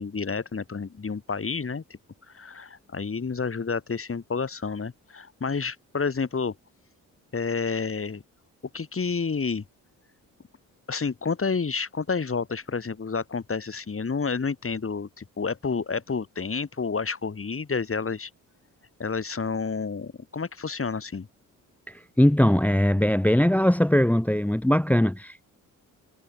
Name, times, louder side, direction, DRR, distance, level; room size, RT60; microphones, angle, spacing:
voice 1, 0.0-1.8 2.3-6.5 7.3-8.2 8.7-9.6 10.9-18.3 19.0-21.3, left 5 dB, 35° left, 3.1 m, -30 dB
voice 2, 21.9-25.4, left 1 dB, 5° left, 1.0 m, -21 dB
supercardioid pair, 60°, 37 cm